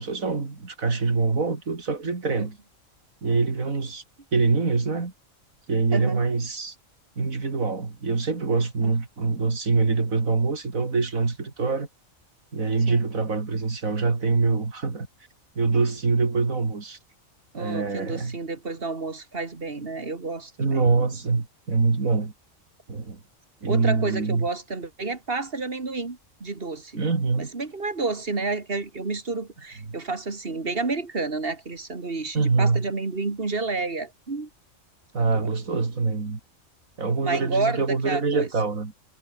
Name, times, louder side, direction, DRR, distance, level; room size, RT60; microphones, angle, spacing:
voice 1, 0.0-2.6 3.2-4.0 4.3-5.1 5.7-6.7 7.2-11.9 12.5-15.1 15.5-17.0 17.5-18.4 20.6-22.3 22.9-23.2 23.6-24.5 26.9-27.5 32.3-32.9 35.1-36.4 37.0-38.9, right 4 dB, 85° right, 3.3 m, -24 dB
voice 2, 5.9-6.2 8.8-9.0 12.9-13.1 17.5-20.8 23.7-27.0 27.4-34.5 35.3-35.5 37.2-38.5, right 3 dB, 45° right, 2.5 m, -30 dB
omnidirectional pair, 1.4 m